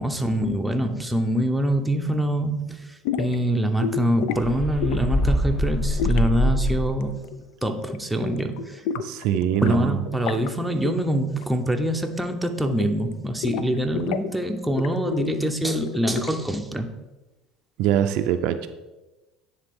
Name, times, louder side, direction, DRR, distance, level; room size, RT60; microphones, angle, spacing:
voice 1, 0.0-2.8 3.2-7.2 7.6-8.8 9.6-16.9, right 1 dB, 5° right, 4 dB, 0.6 m, -24 dB
sound 1, 3.0-3.4 3.8-4.4 4.8-5.2 6.0-7.4 7.7-8.0 8.2-9.8 10.0-10.5 10.8-11.0 11.2-11.7 12.0-13.1 13.4-14.3 14.7-16.5, left 8 dB, 75° left, 0.4 m, -31 dB
sound 2, 4.4-7.1, left 1 dB, 35° left, 1.1 m, -24 dB
voice 2, 9.0-10.0 17.8-18.6, right 11 dB, 65° right, 8 dB, 0.4 m, -23 dB
9.7 x 3.4 x 3.6 m, 1.1 s
supercardioid pair, 110°, 0 cm